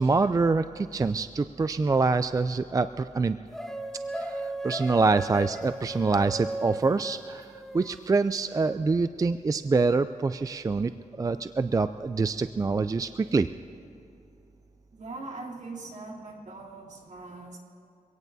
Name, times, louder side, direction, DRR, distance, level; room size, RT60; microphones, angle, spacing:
voice 1, 0.0-3.4 4.1-7.5 7.7-10.9 11.2-13.5, right 4 dB, 25° right, 11 dB, 0.3 m, -25 dB
sound 1, 3.5-8.0, right 1 dB, 5° left, 0.9 m, -36 dB
voice 2, 14.9-17.6, right 3 dB, 60° right, -3 dB, 3.1 m, -41 dB
24.5 x 17.5 x 2.7 m, 2.7 s
cardioid pair, 80°, 14 cm